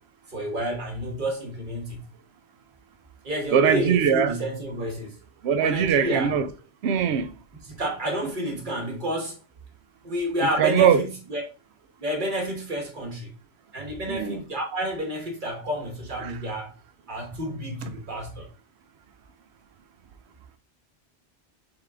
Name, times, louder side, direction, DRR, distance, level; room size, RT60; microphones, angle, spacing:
voice 1, 0.3-2.1 3.2-5.1 5.6-6.3 7.6-9.4 10.0-11.4 12.0-13.3 13.7-16.7 17.1-18.5, equal, 50° right, 1.3 m, -30 dB
voice 2, 3.5-4.3 5.4-6.5 6.8-7.3 10.6-11.0 14.1-14.4 16.2-16.3, right 7 dB, 75° right, 0.8 m, -21 dB
4.0 x 3.6 x 3.3 m
omnidirectional pair, 1.1 m